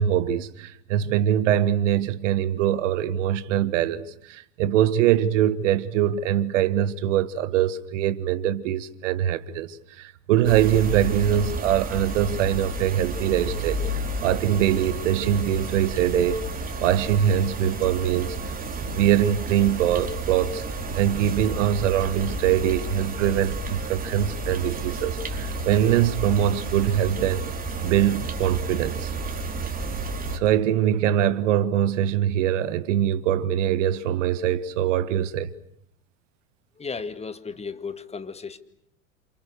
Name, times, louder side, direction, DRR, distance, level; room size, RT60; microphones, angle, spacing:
voice 1, 0.0-16.5 16.8-18.4 18.9-20.6 20.9-27.4 27.8-29.1 30.3-35.5, right 10 dB, 65° right, 1.6 m, -23 dB
sound 1, 10.4-30.4, right 3 dB, 20° right, 3.9 m, -31 dB
voice 2, 36.8-38.6, left 5 dB, 15° left, 2.1 m, -34 dB
29.5 x 27.5 x 6.6 m
hypercardioid pair, 90°, 40 cm